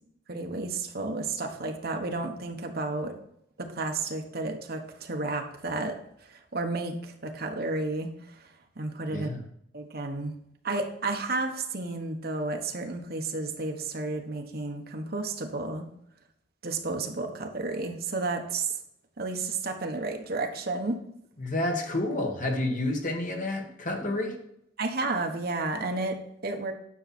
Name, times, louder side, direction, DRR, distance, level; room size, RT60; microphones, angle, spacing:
voice 1, 0.3-3.2 3.6-9.3 9.7-10.3 10.6-15.9 16.6-18.8 19.2-21.0 24.8-26.2 26.4-26.7, right 3 dB, 55° right, 4 dB, 1.3 m, -32 dB
voice 2, 9.1-9.4 21.4-24.4, left 1 dB, 45° left, 3 dB, 1.6 m, -29 dB
10.0 x 6.7 x 4.4 m, 0.73 s
head